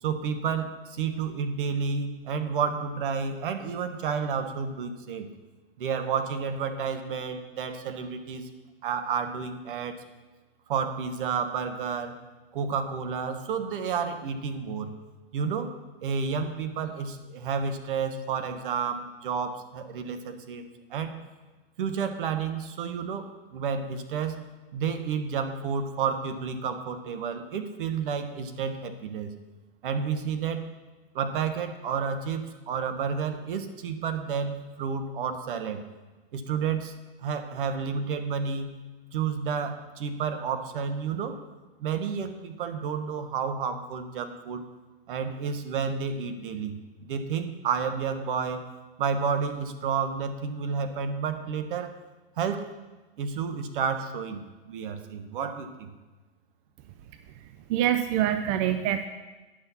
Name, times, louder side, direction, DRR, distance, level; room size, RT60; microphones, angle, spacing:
voice 1, 0.0-5.3 5.8-8.5 8.8-10.0 10.7-12.2 12.5-14.9 15.3-15.7 16.0-20.6 20.9-21.1 21.8-24.4 24.7-29.3 29.8-30.6 31.1-35.8 36.3-36.9 37.2-38.7 39.1-41.4 41.8-44.6 45.1-48.6 49.0-51.9 52.4-52.7 53.2-54.4 54.7-55.9, right 6 dB, 60° right, 8 dB, 1.1 m, -30 dB
voice 2, 57.7-59.1, right 11 dB, 35° right, 9 dB, 0.4 m, -25 dB
10.0 x 6.1 x 5.6 m, 1.2 s
hypercardioid pair, 115°, 29 cm